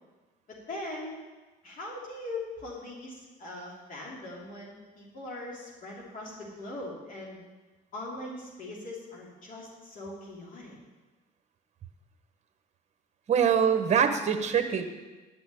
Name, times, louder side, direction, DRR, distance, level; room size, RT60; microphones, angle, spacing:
voice 1, 0.5-1.2 1.6-7.4 7.9-10.8, left 2 dB, 55° left, -3 dB, 3.0 m, -41 dB
voice 2, 13.3-14.9, right 7 dB, 40° right, 7 dB, 1.3 m, -24 dB
11.0 x 6.2 x 8.8 m, 1.2 s
cardioid pair, 110°, 17 cm